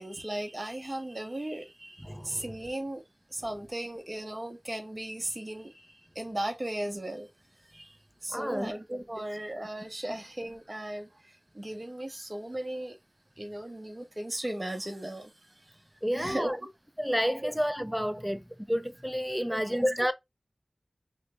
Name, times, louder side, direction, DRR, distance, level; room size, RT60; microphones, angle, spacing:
voice 1, 0.0-3.0 3.3-7.3 7.7-13.0 13.4-15.3 15.7-15.8 16.1-16.5 17.4-17.5 19.4-19.7, right 1 dB, 35° right, 0.8 m, -37 dB
voice 2, 2.0-2.5 8.3-8.7 16.0-16.6 17.0-20.1, equal, ahead, 0.4 m, -30 dB
3.2 x 2.0 x 3.1 m
wide cardioid pair, 65°, 0 cm